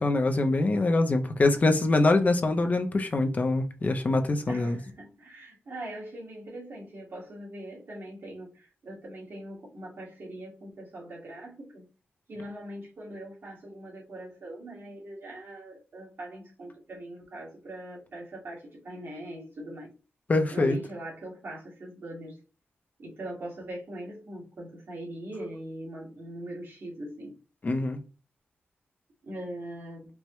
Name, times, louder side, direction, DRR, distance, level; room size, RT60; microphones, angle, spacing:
voice 1, 0.0-4.8 20.3-20.8 27.6-28.0, left 2 dB, 35° left, 0.5 m, -24 dB
voice 2, 4.5-11.8 12.3-20.0 20.5-22.4 23.0-27.4 29.2-30.1, right 1 dB, 60° right, 1.8 m, -41 dB
4.6 x 2.1 x 3.0 m
wide cardioid pair, 110°, 4 cm